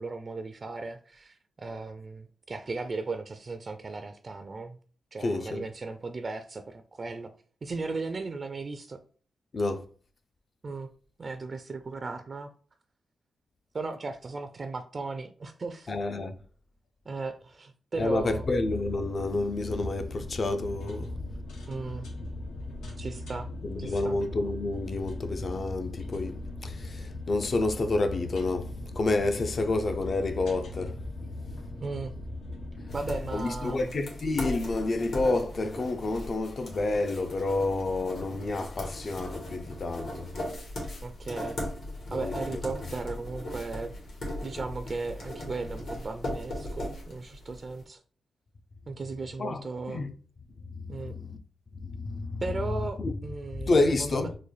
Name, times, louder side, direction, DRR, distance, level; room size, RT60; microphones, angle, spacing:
voice 1, 0.0-4.8 5.1-7.3 7.6-9.0 10.6-10.9 11.2-12.5 13.7-15.9 17.1-18.5 21.7-22.1 23.0-23.5 23.8-24.2 31.8-32.1 32.9-33.9 41.0-41.6 42.1-43.9 44.4-48.0 48.9-50.1 50.9-51.1 52.4-54.3, right 3 dB, 45° right, 0.3 m, -36 dB
voice 2, 5.2-5.6 9.5-9.8 15.9-16.3 18.0-21.1 23.6-28.7 29.0-31.0 33.3-40.3 42.1-42.6 49.4-49.6 49.9-50.1 50.7-51.4 51.8-52.4 53.0-53.1 53.5-54.4, left 2 dB, 50° left, 0.5 m, -29 dB
sound 1, 17.9-33.4, left 2 dB, 90° left, 0.8 m, -39 dB
sound 2, 32.9-47.7, left 1 dB, 70° left, 1.5 m, -38 dB
3.8 x 2.2 x 3.2 m
cardioid pair, 65°, 0 cm